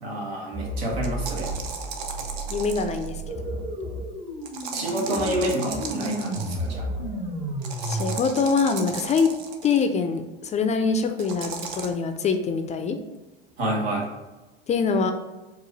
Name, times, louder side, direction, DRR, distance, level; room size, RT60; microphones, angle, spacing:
voice 1, 0.0-1.5 4.7-6.9 13.6-14.1, right 1 dB, 90° right, -2 dB, 1.4 m, -28 dB
sound 1, 0.5-8.2, right 1 dB, 45° right, 1.5 m, -32 dB
sound 2, 1.0-3.2 4.5-6.7 7.6-9.8 11.2-11.9, right 5 dB, 65° right, 0.8 m, -36 dB
voice 2, 2.5-3.3 7.8-9.3 9.6-13.0 14.7-15.1, left 5 dB, 25° left, 7 dB, 0.3 m, -24 dB
4.7 x 2.4 x 3.9 m, 1.1 s
supercardioid pair, 105°, 29 cm